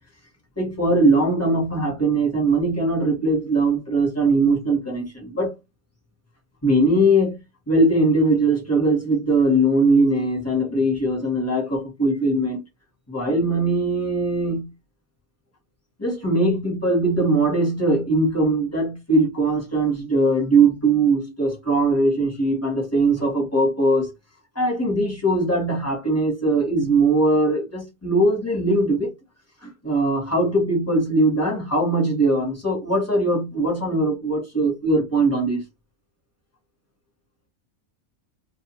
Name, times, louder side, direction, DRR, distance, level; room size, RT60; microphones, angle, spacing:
voice 1, 0.6-5.5 6.6-7.4 7.7-12.6 13.1-14.7 16.0-24.1 24.5-29.1 29.6-35.6, right 2 dB, 15° left, 0.8 m, -20 dB
2.3 x 2.2 x 2.8 m
omnidirectional pair, 1.4 m